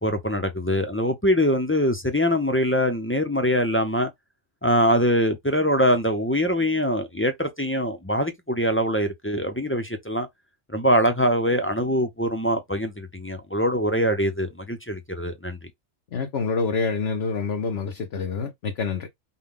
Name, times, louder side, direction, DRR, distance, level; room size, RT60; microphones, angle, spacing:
voice 1, 0.0-4.1 4.6-10.3 10.7-15.6, equal, 10° left, 0.6 m, -23 dB
voice 2, 16.1-19.1, left 4 dB, 55° left, 0.9 m, -27 dB
5.7 x 2.3 x 3.6 m
omnidirectional pair, 1.4 m